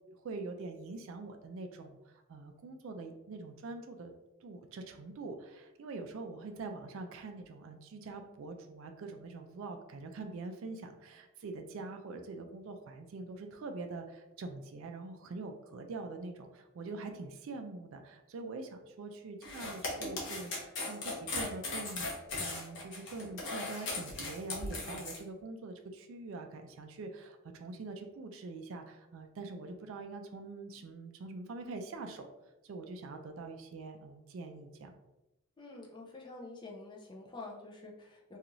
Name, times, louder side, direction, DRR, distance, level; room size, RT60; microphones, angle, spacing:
voice 1, 0.2-4.1 4.4-32.3 32.6-34.9, right 3 dB, 65° right, 5 dB, 0.3 m, -44 dB
sound 1, 19.4-25.2, left 2 dB, 55° left, 0.7 m, -38 dB
voice 2, 35.6-38.4, left 2 dB, 20° left, -1 dB, 0.4 m, -48 dB
2.5 x 2.4 x 2.9 m, 0.95 s
head